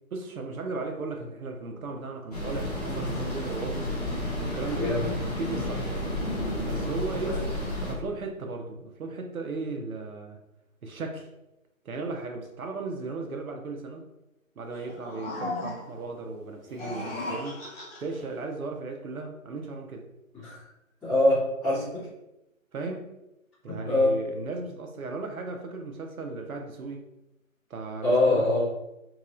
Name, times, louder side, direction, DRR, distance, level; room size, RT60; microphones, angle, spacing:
voice 1, 0.1-4.0 4.4-6.1 6.7-7.4 7.8-10.4 10.8-11.3 11.8-14.1 14.6-17.6 18.0-20.1 22.7-23.1 23.6-27.0 27.7-28.5, right 3 dB, 80° right, 3 dB, 0.7 m, -36 dB
sound 1, 2.3-7.9, left 1 dB, 30° left, 0.6 m, -31 dB
voice 2, 4.7-5.1 7.1-7.4 20.3-20.6 21.0-22.1 23.6-24.2 28.0-28.7, left 1 dB, ahead, -23 dB, 0.9 m, -24 dB
sound 2, 14.7-16.1 16.6-18.2, left 2 dB, 45° left, 1.2 m, -36 dB
2.9 x 2.7 x 2.5 m, 0.92 s
figure-of-eight pair, 155°, 41 cm